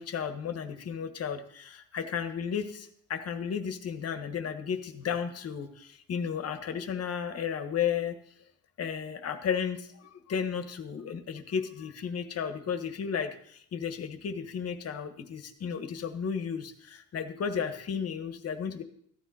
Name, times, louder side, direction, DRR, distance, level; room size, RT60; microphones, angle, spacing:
voice 1, 0.0-8.2 8.8-18.8, left 7 dB, 50° left, 8 dB, 1.5 m, -33 dB
14.5 x 10.5 x 4.2 m, 0.64 s
cardioid pair, 120°, 31 cm